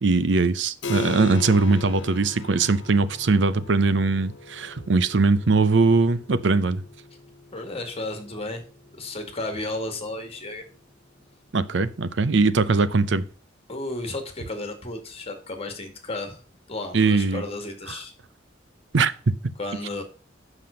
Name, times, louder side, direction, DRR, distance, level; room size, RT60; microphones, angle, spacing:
voice 1, 0.0-6.8 11.5-13.3 16.9-17.4 17.9-18.0 18.9-19.3, right 3 dB, 70° right, 0.7 m, -21 dB
Keyboard (musical), 0.8-11.0, left 3 dB, 85° left, 1.1 m, -39 dB
voice 2, 7.5-8.6 9.0-10.7 13.7-16.4 16.7-18.1 19.6-20.0, left 2 dB, 35° left, 2.0 m, -33 dB
7.6 x 6.1 x 5.1 m
head